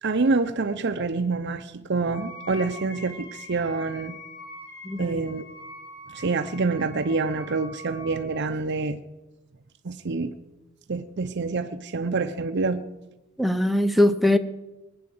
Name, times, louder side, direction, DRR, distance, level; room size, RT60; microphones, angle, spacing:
voice 1, 0.0-4.2 5.0-5.4 6.1-9.0 9.8-10.3 10.9-12.8, right 3 dB, 55° right, 6 dB, 0.7 m, -27 dB
Wind instrument woodwind instrument, 2.1-8.4, left 1 dB, 50° left, 4.2 m, -43 dB
voice 2, 4.8-5.2 13.4-14.4, left 1 dB, ahead, 7 dB, 0.7 m, -21 dB
20.0 x 8.7 x 7.8 m, 1.0 s
head